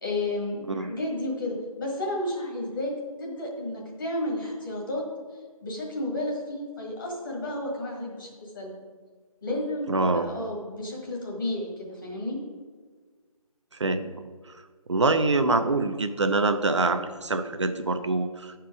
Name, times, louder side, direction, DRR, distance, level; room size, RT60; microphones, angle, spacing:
voice 1, 0.0-2.9 3.2-5.0 5.6-8.7 9.4-12.4, left 1 dB, 35° left, -2 dB, 1.6 m, -32 dB
voice 2, 9.9-10.3 13.7-14.6 14.9-18.5, right 3 dB, 50° right, 9 dB, 0.6 m, -25 dB
11.0 x 4.5 x 4.8 m, 1.5 s
figure-of-eight pair, 165°, 19 cm